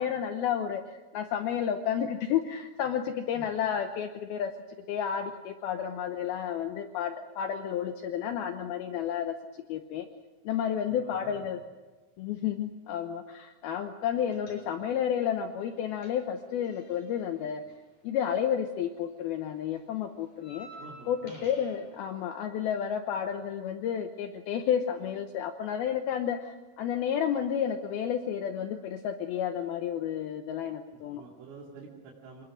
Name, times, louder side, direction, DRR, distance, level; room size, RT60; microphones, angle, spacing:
voice 1, 0.0-4.5 4.9-10.1 10.4-11.6 12.2-17.6 18.0-20.7 21.1-31.2, left 8 dB, 90° left, 6 dB, 2.1 m, -31 dB
voice 2, 10.9-11.5 14.2-14.4 20.8-21.5 31.2-32.5, right 3 dB, 80° right, -4 dB, 5.2 m, -48 dB
sound 1, 14.3-15.1 15.3-18.7 19.0-21.9, equal, 45° left, 6.7 m, -52 dB
26.5 x 20.0 x 6.2 m, 1.3 s
omnidirectional pair, 5.7 m